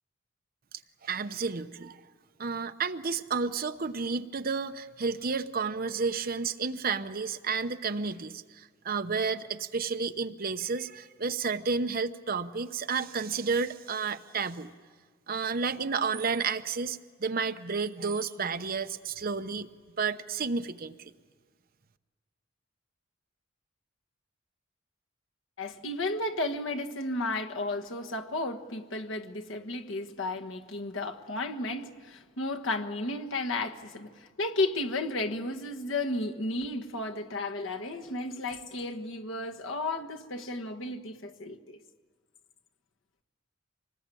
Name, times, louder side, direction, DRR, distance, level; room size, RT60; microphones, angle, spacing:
voice 1, 1.0-2.0 2.4-14.7 15.3-19.7 20.0-21.0, right 5 dB, 50° right, 9 dB, 0.9 m, -31 dB
voice 2, 25.6-41.8, left 2 dB, 75° left, 4 dB, 1.4 m, -33 dB
25.5 x 19.5 x 9.1 m, 1.5 s
head